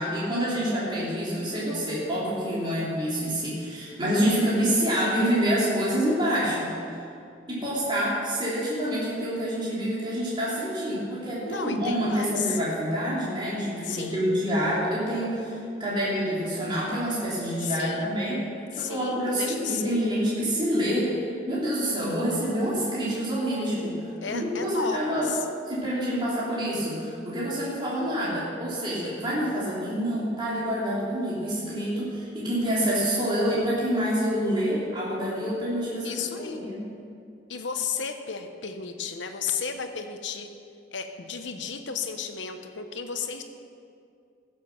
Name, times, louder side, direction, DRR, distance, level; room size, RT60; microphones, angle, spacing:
voice 1, 0.0-7.0 7.5-18.4 18.7-24.0 24.3-25.3 25.7-36.8, equal, 25° right, -8 dB, 3.0 m, -27 dB
voice 2, 11.4-12.6 13.8-14.4 17.6-18.1 18.7-20.0 24.2-25.5 36.0-36.6 37.5-40.5 40.9-43.4, left 6 dB, 85° left, 6 dB, 1.0 m, -33 dB
15.5 x 7.5 x 6.0 m, 2.4 s
head